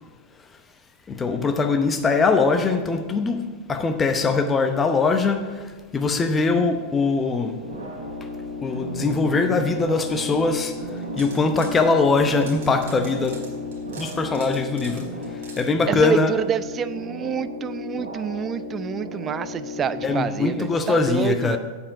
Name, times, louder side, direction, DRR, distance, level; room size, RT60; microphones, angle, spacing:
voice 1, 1.1-3.4 3.7-7.6 8.6-13.4 14.0-16.3 20.0-21.6, left 4 dB, 20° left, 0.8 m, -22 dB
sound 1, 7.6-20.2, left 2 dB, 75° right, 2.4 m, -34 dB
sound 2, 10.9-11.8 12.2-15.6, right 4 dB, 60° right, 1.7 m, -44 dB
voice 2, 15.9-21.6, right 8 dB, 25° right, 0.3 m, -27 dB
7.5 x 7.1 x 4.9 m
figure-of-eight pair, 90°, 0 cm